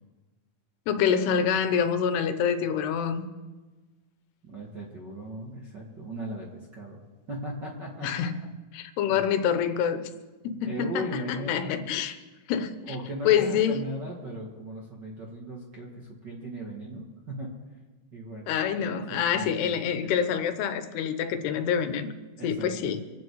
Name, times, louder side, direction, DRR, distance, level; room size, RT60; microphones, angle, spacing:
voice 1, 0.9-3.3 8.0-8.3 8.7-10.0 10.4-12.2 12.5-13.0 13.2-13.9 18.5-22.1 22.4-23.0, left 8 dB, 85° left, 3.0 m, -26 dB
voice 2, 4.4-7.0 7.3-8.1 9.1-9.2 10.6-11.7 12.8-17.5 18.1-18.8 19.1-19.7 20.0-20.1 22.4-22.9, right 1 dB, 40° right, 1.5 m, -38 dB
26.0 x 9.3 x 4.7 m
omnidirectional pair, 4.7 m